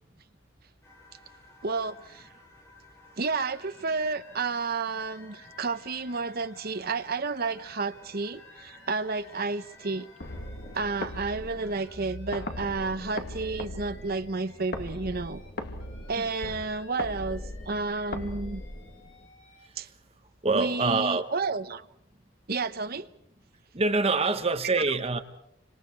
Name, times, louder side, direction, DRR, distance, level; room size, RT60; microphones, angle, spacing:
sound 1, 0.8-11.9, left 2 dB, 15° left, 3.4 m, -55 dB
voice 1, 1.6-2.3 3.2-10.1 10.7-15.4 16.1-18.6 19.8-19.9 20.5-21.9 22.5-23.1, right 4 dB, 50° right, 1.0 m, -31 dB
Alarm, 3.3-7.2 7.5-11.3 11.6-15.5 15.8-19.7, left 3 dB, 75° left, 4.2 m, -56 dB
sound 2, 10.2-19.3, left 1 dB, 55° left, 2.1 m, -39 dB
voice 2, 20.4-21.3 23.7-25.2, right 3 dB, 30° right, 1.3 m, -26 dB
29.5 x 25.5 x 4.7 m
head